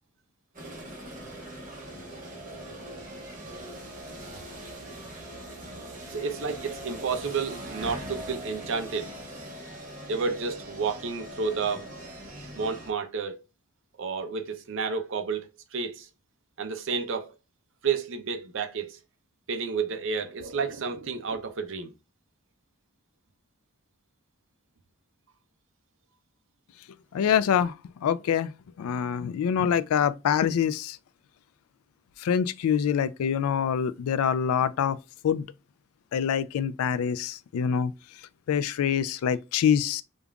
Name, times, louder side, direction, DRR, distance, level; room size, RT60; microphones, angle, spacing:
sound 1, 0.5-12.9, right 1 dB, 35° right, 1.0 m, -41 dB
voice 1, 6.1-9.1 10.1-11.9 12.5-13.4 14.0-16.1 16.6-17.3 17.8-19.0 19.5-21.9, right 5 dB, 55° right, 0.5 m, -31 dB
voice 2, 27.1-27.7 28.0-28.5 28.8-31.0 32.2-35.5 36.1-37.9 38.5-40.0, left 8 dB, 75° left, 0.3 m, -25 dB
5.1 x 2.4 x 2.2 m
head